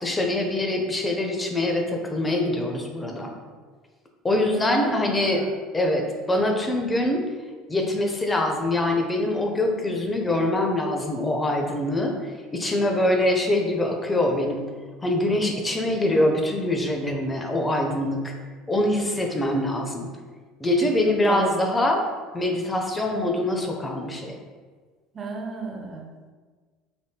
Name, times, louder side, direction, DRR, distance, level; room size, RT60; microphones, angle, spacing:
voice 1, 0.0-3.3 4.2-5.4 5.7-7.3 7.7-12.1 12.5-14.7 15.0-18.3 18.7-20.1 20.6-22.0 22.3-24.4, left 1 dB, 20° left, 2 dB, 0.5 m, -24 dB
voice 2, 4.5-5.5 21.2-21.5 25.1-26.3, right 3 dB, 35° right, 2 dB, 0.5 m, -32 dB
3.5 x 2.6 x 2.2 m, 1.5 s
hypercardioid pair, 75°, 0 cm